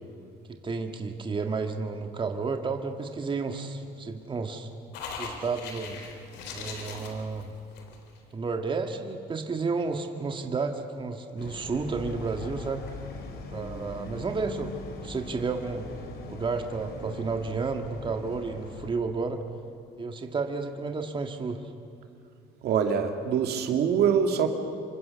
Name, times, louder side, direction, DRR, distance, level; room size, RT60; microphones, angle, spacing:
voice 1, 0.6-4.7 5.2-6.0 6.5-7.5 8.3-12.8 13.5-14.7 15.0-15.9 16.3-19.4 20.0-21.7, right 4 dB, 30° right, 5 dB, 1.8 m, -31 dB
sound 1, 4.9-8.2, left 5 dB, 90° left, 3.8 m, -40 dB
sound 2, 11.4-18.9, left 3 dB, 70° left, 4.2 m, -41 dB
voice 2, 22.6-24.5, right 7 dB, 70° right, 5 dB, 2.4 m, -24 dB
28.0 x 24.5 x 7.0 m, 2.7 s
cardioid pair, 110°, 17 cm